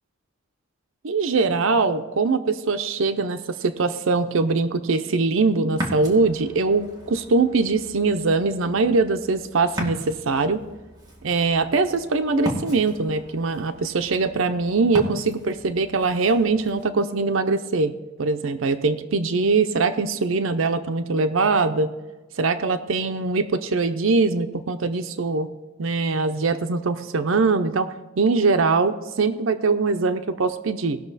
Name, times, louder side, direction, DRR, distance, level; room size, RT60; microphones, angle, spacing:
voice 1, 1.0-10.6 11.2-17.9 18.2-21.9 22.4-25.5 25.8-27.9 28.2-31.0, right 3 dB, 75° right, 8 dB, 0.6 m, -22 dB
Ocean, 5.7-16.8, equal, 20° right, 2.1 m, -37 dB
18.5 x 6.2 x 4.0 m, 1.2 s
head